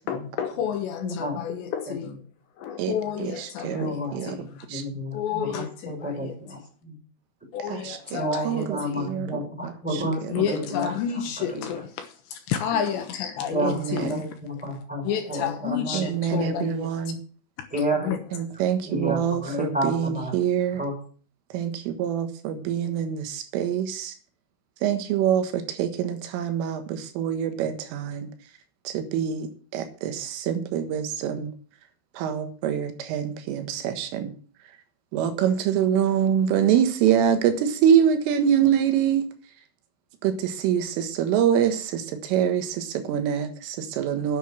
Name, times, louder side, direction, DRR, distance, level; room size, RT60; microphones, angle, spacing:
voice 1, 0.0-2.1 2.6-4.0 4.3-4.4 5.1-6.3 7.5-8.5 8.8-9.0 10.3-14.1 15.0-16.9 18.0-18.2, left 9 dB, 75° left, 3.1 m, -30 dB
voice 2, 1.0-1.6 1.9-2.1 3.6-7.0 8.1-11.6 13.3-16.7 17.7-18.1 18.8-20.3 20.8-21.0, equal, ahead, 4.8 m, -31 dB
voice 3, 2.8-4.4 4.7-4.8 7.6-10.5 13.6-14.2 15.9-17.2 18.3-20.8 21.5-24.2 24.8-28.3 28.9-31.5 32.1-34.4 35.1-39.3 40.2-44.4, right 9 dB, 90° right, 4.0 m, -25 dB
10.0 x 8.3 x 7.4 m
omnidirectional pair, 5.7 m